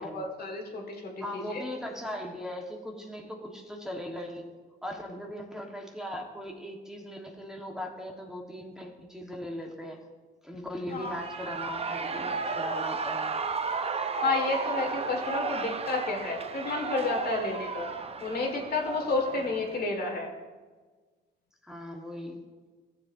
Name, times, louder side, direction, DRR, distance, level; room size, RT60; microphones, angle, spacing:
voice 1, 0.0-1.6 10.9-11.2 14.2-17.9 18.2-20.3, left 3 dB, 50° left, 2 dB, 1.8 m, -31 dB
voice 2, 1.2-4.5 4.8-10.0 10.4-13.4 21.6-22.4, equal, 5° right, -1 dB, 1.3 m, -39 dB
Shout / Cheering, 10.9-19.8, right 4 dB, 30° right, 0.7 m, -34 dB
15.5 x 7.4 x 2.6 m, 1.4 s
cardioid pair, 90°, 20 cm